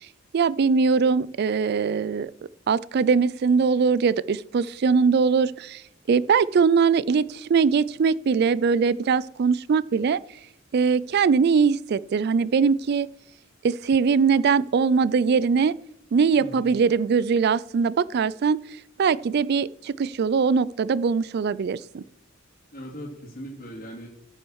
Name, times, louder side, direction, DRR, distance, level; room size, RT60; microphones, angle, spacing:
voice 1, 0.3-2.3 2.7-5.8 6.1-10.2 10.7-13.1 13.6-15.8 16.1-18.6 19.0-22.0, right 5 dB, 55° right, 19 dB, 0.4 m, -21 dB
voice 2, 16.4-16.7 22.7-24.1, equal, 50° left, -4 dB, 2.5 m, -39 dB
15.0 x 6.3 x 6.3 m, 0.76 s
head